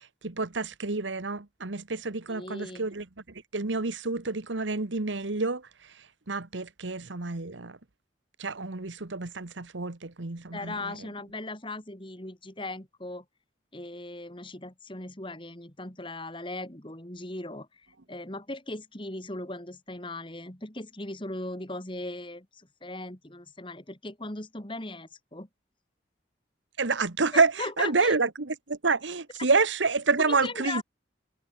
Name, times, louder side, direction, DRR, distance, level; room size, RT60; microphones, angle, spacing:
voice 1, 0.2-3.0 3.5-5.6 6.3-7.8 8.4-10.9 26.8-30.8, right 4 dB, 80° right, 1.3 m, -28 dB
voice 2, 2.3-2.9 10.5-13.2 13.7-25.5 27.3-28.2 30.2-30.8, left 2 dB, 25° left, 2.7 m, -38 dB
head